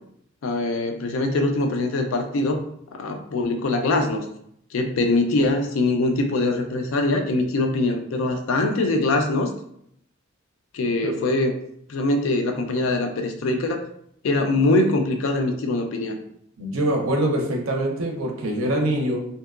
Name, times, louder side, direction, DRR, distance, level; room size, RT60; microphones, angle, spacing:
voice 1, 0.4-2.6 2.9-4.3 4.7-9.5 10.7-11.5 11.9-13.8 14.2-16.2, left 2 dB, 75° left, 5 dB, 0.4 m, -23 dB
voice 2, 16.6-19.2, right 1 dB, 85° right, 1 dB, 0.5 m, -24 dB
2.7 x 2.2 x 2.3 m, 0.70 s
head